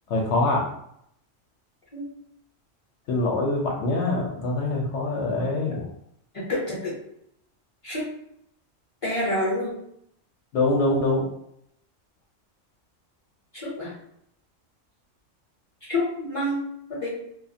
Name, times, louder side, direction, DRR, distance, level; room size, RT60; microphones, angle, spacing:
voice 1, 0.1-0.6 3.1-5.9 10.5-11.3, left 2 dB, 70° left, 0 dB, 0.8 m, -24 dB
voice 2, 6.3-7.0 7.8-8.1 9.0-9.8 13.5-13.9 15.9-16.6 16.9-17.1, left 1 dB, 35° left, -6 dB, 0.6 m, -28 dB
2.4 x 2.4 x 2.7 m, 0.73 s
omnidirectional pair, 1.3 m